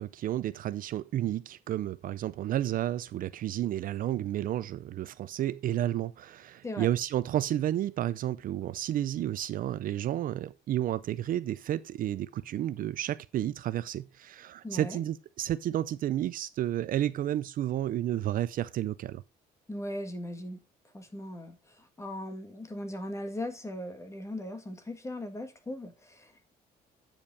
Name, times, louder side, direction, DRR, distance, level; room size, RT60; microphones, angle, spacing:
voice 1, 0.0-19.2, right 12 dB, 55° right, 0.5 m, -31 dB
voice 2, 14.6-15.0 19.7-20.6 20.9-26.5, left 1 dB, 15° left, 1.7 m, -39 dB
8.8 x 5.2 x 4.6 m
cardioid pair, 110°, 17 cm